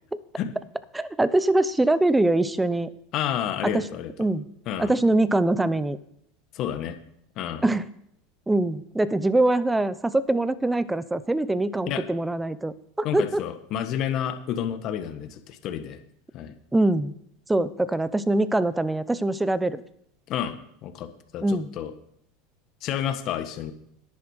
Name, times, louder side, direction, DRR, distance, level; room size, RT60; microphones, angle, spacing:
voice 1, 0.9-2.9 3.6-3.9 4.2-4.5 4.8-6.0 7.6-7.9 8.5-13.4 16.7-17.1 17.5-19.8 21.4-21.7, right 2 dB, 10° right, 16 dB, 0.7 m, -23 dB
voice 2, 3.1-4.1 4.7-4.9 6.5-7.0 7.4-7.6 11.9-12.0 13.0-16.0 16.3-16.5 20.3-20.5 20.8-21.9 22.8-23.7, left 10 dB, 50° left, 9 dB, 1.5 m, -30 dB
10.5 x 10.5 x 4.9 m, 0.72 s
hypercardioid pair, 100°, 0 cm